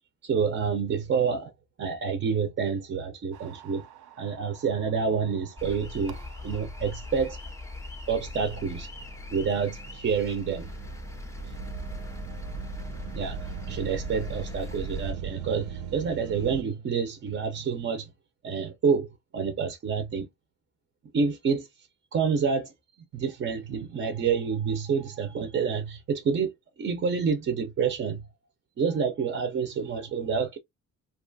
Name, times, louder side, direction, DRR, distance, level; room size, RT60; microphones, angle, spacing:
voice 1, 0.2-1.5 1.8-3.9 4.2-6.2 6.4-7.4 8.1-8.9 9.3-10.7 11.4-11.5 13.1-18.1 18.4-20.3 21.1-22.7 23.1-28.3 28.8-30.6, right 6 dB, 40° right, 0.6 m, -28 dB
sound 1, 3.3-16.6, right 8 dB, 90° right, 0.5 m, -42 dB
sound 2, 5.6-15.1, left 3 dB, 10° left, 0.5 m, -40 dB
2.6 x 2.4 x 2.5 m
cardioid pair, 90°, 30 cm